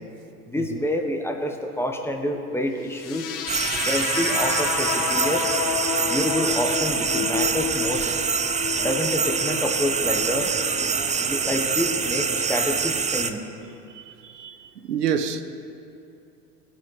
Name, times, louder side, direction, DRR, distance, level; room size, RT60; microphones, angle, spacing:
voice 1, 0.5-3.3 3.8-5.5 6.0-8.1 8.8-10.5 11.2-13.4, left 1 dB, 5° left, 1.5 m, -28 dB
sound 1, 2.9-10.9, left 7 dB, 40° left, 1.9 m, -30 dB
sound 2, 3.5-13.3, right 6 dB, 15° right, 0.7 m, -25 dB
sound 3, 4.9-12.4, left 1 dB, 20° left, 1.6 m, -40 dB
voice 2, 13.9-15.4, right 7 dB, 85° right, 0.9 m, -28 dB
19.5 x 8.9 x 5.1 m
hypercardioid pair, 85°, 47 cm